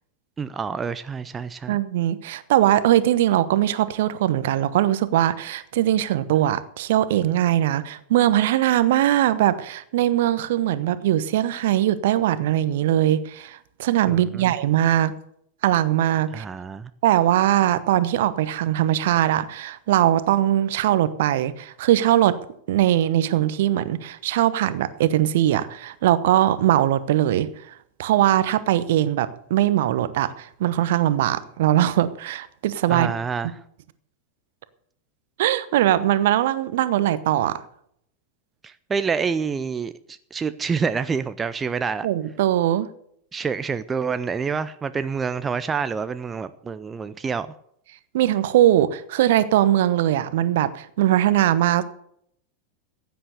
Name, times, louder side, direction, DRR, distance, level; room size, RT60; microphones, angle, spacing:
voice 1, 0.4-1.8 14.1-14.5 16.3-16.9 32.9-33.5 38.6-42.1 43.3-47.5, right 5 dB, 15° right, 12 dB, 0.6 m, -27 dB
voice 2, 1.7-15.1 15.6-16.4 17.0-22.4 22.7-27.5 28.0-33.1 35.4-37.6 42.0-42.9 48.1-51.8, right 12 dB, 55° right, 14 dB, 1.0 m, -21 dB
15.5 x 9.3 x 6.8 m, 0.70 s
figure-of-eight pair, 90°, 0 cm